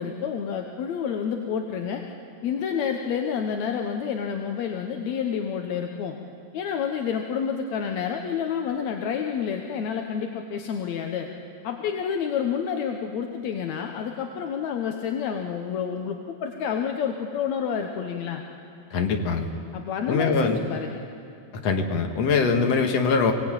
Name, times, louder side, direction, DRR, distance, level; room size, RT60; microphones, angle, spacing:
voice 1, 0.0-2.0 2.4-6.2 6.5-11.3 11.6-18.4 19.7-21.0, left 7 dB, 65° left, 3 dB, 1.9 m, -29 dB
voice 2, 18.9-19.5 20.1-20.6 21.6-23.3, left 4 dB, 50° left, 4 dB, 2.5 m, -22 dB
24.5 x 18.0 x 9.0 m, 2.4 s
omnidirectional pair, 4.1 m